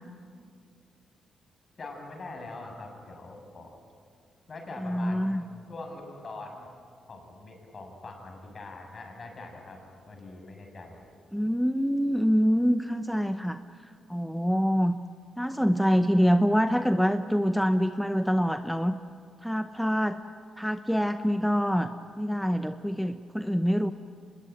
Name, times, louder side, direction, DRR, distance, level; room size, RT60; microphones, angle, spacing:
voice 1, 1.8-3.8 4.5-6.7 7.1-9.8 10.0-11.0 16.2-16.3, left 2 dB, 40° left, 3 dB, 6.4 m, -43 dB
voice 2, 4.8-5.4 11.3-15.0 15.4-18.9 19.4-20.2 20.6-21.9 22.2-23.9, equal, ahead, 8 dB, 0.8 m, -25 dB
25.0 x 20.5 x 9.2 m, 2.2 s
cardioid pair, 100°, 0 cm